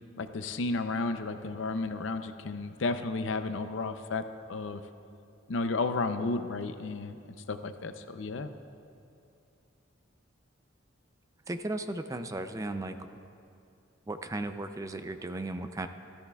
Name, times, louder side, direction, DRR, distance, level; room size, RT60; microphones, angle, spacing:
voice 1, 0.2-4.8 5.5-7.2 7.5-8.5, left 3 dB, 70° left, 9 dB, 0.6 m, -32 dB
voice 2, 11.5-12.9 14.1-15.9, right 2 dB, 15° right, 8 dB, 0.4 m, -35 dB
17.0 x 13.0 x 2.3 m, 2.6 s
head